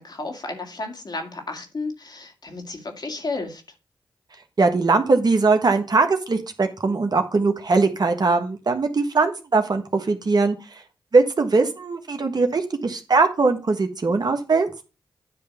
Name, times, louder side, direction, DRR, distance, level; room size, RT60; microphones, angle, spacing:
voice 1, 0.0-3.6, left 3 dB, 50° left, 2.3 m, -32 dB
voice 2, 4.6-10.6 11.1-14.7, right 3 dB, 50° right, 1.5 m, -20 dB
9.9 x 3.4 x 7.0 m
supercardioid pair, 40°, 9 cm